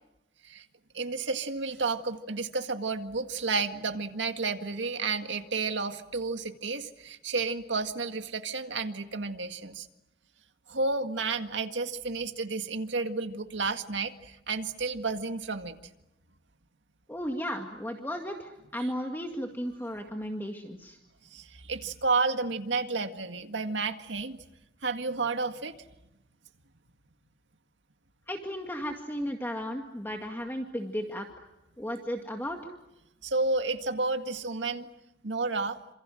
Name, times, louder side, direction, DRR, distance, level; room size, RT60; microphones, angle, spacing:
voice 1, 0.9-9.9 10.7-15.8 21.3-24.4 24.8-25.8 33.2-34.9 35.2-35.8, right 3 dB, 85° right, 7 dB, 1.9 m, -31 dB
voice 2, 17.1-21.0 28.3-31.5 31.8-32.6, equal, 10° left, 3 dB, 2.0 m, -35 dB
28.0 x 27.0 x 7.7 m, 0.90 s
head